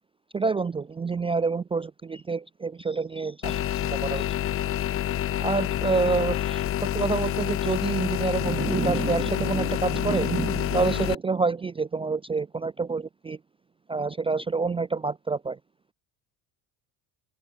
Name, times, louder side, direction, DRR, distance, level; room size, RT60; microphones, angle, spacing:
voice 1, 0.3-4.3 5.4-6.6 6.9-13.4 13.9-15.6, right 4 dB, 15° right, 0.4 m, -27 dB
sound 1, 3.4-11.1, left 11 dB, 30° left, 0.6 m, -28 dB
open air
supercardioid pair, 90°, 45 cm